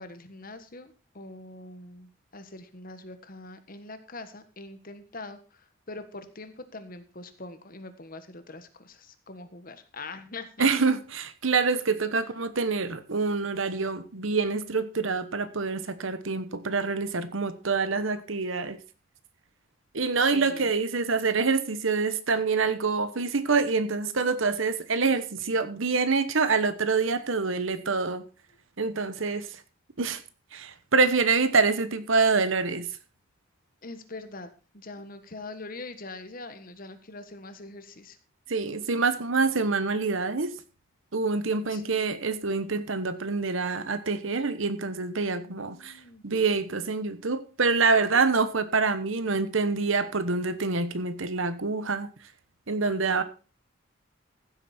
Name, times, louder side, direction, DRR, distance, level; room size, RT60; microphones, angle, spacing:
voice 1, 0.0-10.7 20.2-20.7 33.8-38.2 41.7-42.0 45.3-46.2, left 2 dB, 40° left, 1.4 m, -43 dB
voice 2, 10.6-18.8 19.9-28.2 28.8-29.5 30.0-30.2 30.5-32.9 38.5-40.5 41.1-45.9 46.2-52.1 52.7-53.2, right 4 dB, 70° right, 1.1 m, -26 dB
15.0 x 8.3 x 4.3 m
head